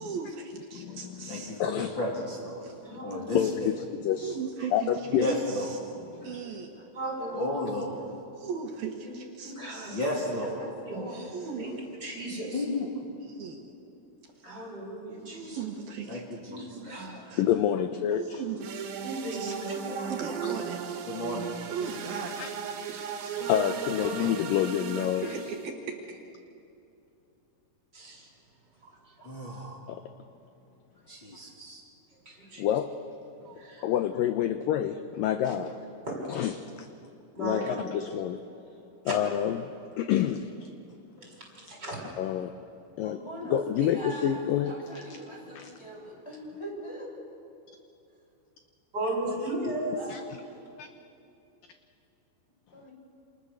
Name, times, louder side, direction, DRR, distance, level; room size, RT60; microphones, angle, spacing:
voice 1, 0.0-1.6 2.6-2.8 4.2-5.8 6.2-6.7 8.4-10.0 11.1-11.7 13.2-13.6 14.4-14.5 15.3-16.2 17.3-17.4 18.2-18.9 19.3-19.5 20.1-21.1 21.7-22.4 22.9-23.4 25.2-26.2, right 6 dB, 65° right, 1 dB, 3.3 m, -38 dB
voice 2, 0.7-1.3 1.6-1.9 2.9-4.4 4.7-5.3 6.1-6.4 17.4-18.2 20.4-20.5 22.4-22.5 23.5-25.3 29.9-30.0 32.6-33.0 33.8-35.7 36.3-36.9 37.4-38.4 39.1-40.7 42.2-42.5 43.0-43.2 43.5-44.7 45.6-45.7 50.1-50.2 50.8-50.9, left 10 dB, 75° left, 8 dB, 2.1 m, -28 dB
voice 3, 1.3-2.6 3.0-3.7 5.1-5.8 7.3-8.0 9.9-10.7 12.5-13.1 16.1-17.0 21.1-21.5 29.2-29.8 31.1-31.8, left 1 dB, 30° left, -5 dB, 3.1 m, -33 dB
voice 4, 2.8-3.2 5.2-5.3 6.2-6.3 6.9-7.5 9.0-9.1 9.4-9.9 10.4-10.5 10.9-11.3 11.6-11.7 12.0-12.6 14.4-15.6 16.4-17.3 19.0-19.6 24.0-24.3 27.9-28.3 28.8-28.9 29.2-29.3 32.3-32.6 33.4-33.9 35.4-35.6 36.1-36.3 37.3-37.8 41.1-42.0 48.9-50.0, right 1 dB, 25° right, -1 dB, 6.5 m, -36 dB
voice 5, 7.4-8.0 10.6-11.3 17.8-17.9 19.6-20.4 43.0-47.1 50.0-50.5 52.7-52.9, equal, 5° left, -2 dB, 6.6 m, -42 dB
sound 1, 18.6-25.7, right 7 dB, 90° right, 3.8 m, -36 dB
28.0 x 27.5 x 6.8 m, 2.7 s
omnidirectional pair, 4.8 m